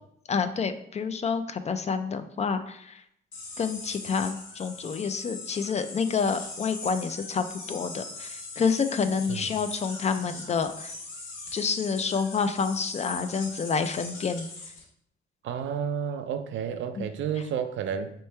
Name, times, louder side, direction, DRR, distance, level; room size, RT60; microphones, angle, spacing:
voice 1, 0.3-3.0 3.6-10.9 11.5-14.5 17.0-17.1, left 5 dB, 35° left, 10 dB, 0.4 m, -28 dB
sound 1, 3.3-14.8, left 3 dB, 80° left, 1.1 m, -41 dB
voice 2, 15.4-18.1, right 7 dB, 70° right, 9 dB, 0.5 m, -31 dB
4.4 x 3.0 x 3.2 m, 0.72 s
cardioid pair, 90°, 20 cm